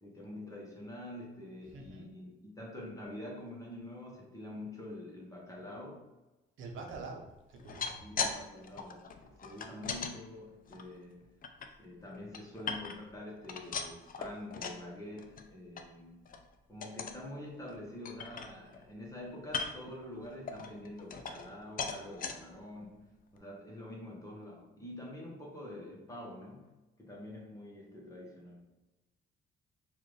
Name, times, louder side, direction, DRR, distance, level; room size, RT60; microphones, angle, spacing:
voice 1, 0.0-6.1 8.0-11.3 11.8-16.2 16.7-23.1 23.3-26.7 27.0-28.6, left 1 dB, 15° left, -3 dB, 1.3 m, -46 dB
voice 2, 1.7-2.1 6.6-8.0, right 3 dB, 80° right, 1 dB, 0.8 m, -45 dB
sound 1, 7.5-8.4 8.6-10.1 10.7-11.7 12.1-13.1 13.4-14.8 15.2-15.4 15.8-15.9 16.2-16.5 16.8-17.2 17.7-17.8 18.0-18.9 19.4-19.9 20.5-21.5 21.8-22.3 22.9-23.0 23.4-23.5, left 5 dB, 45° left, 0.5 m, -39 dB
4.4 x 2.6 x 3.2 m, 1.0 s
cardioid pair, 90°, 20 cm